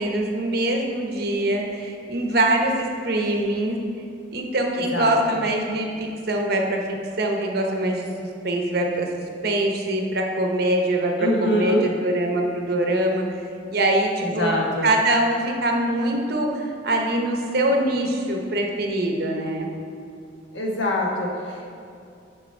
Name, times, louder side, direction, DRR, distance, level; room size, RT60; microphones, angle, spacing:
voice 1, 0.0-3.8 4.3-6.8 7.2-9.1 9.4-13.2 13.7-19.7, right 1 dB, 55° right, 2 dB, 0.9 m, -23 dB
voice 2, 4.9-5.4 11.2-11.9 14.4-14.9 20.5-21.8, left 1 dB, 80° left, -1 dB, 1.2 m, -24 dB
6.7 x 6.2 x 4.4 m, 2.4 s
head